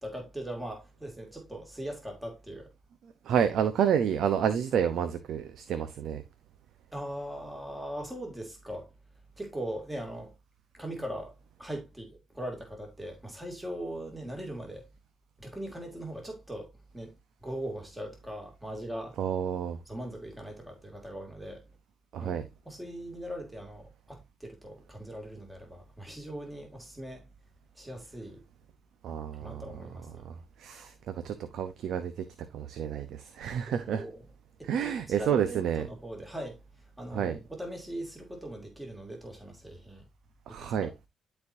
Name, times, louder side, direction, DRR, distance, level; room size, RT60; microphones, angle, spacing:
voice 1, 0.0-2.7 6.9-8.9 9.4-10.3 10.7-14.9 15.4-19.2 19.9-21.6 22.2-22.4 22.7-27.3 27.7-28.4 29.3-30.2 33.7-34.2 34.6-40.0 40.5-40.9, right 1 dB, 10° right, 2.5 m, -40 dB
voice 2, 3.2-6.2 19.2-19.8 22.1-22.4 29.0-29.6 30.2-32.2 32.5-34.0 34.7-35.9 37.1-37.4 40.5-40.9, right 8 dB, 75° right, 0.8 m, -29 dB
12.0 x 4.5 x 2.7 m
cardioid pair, 90°, 0 cm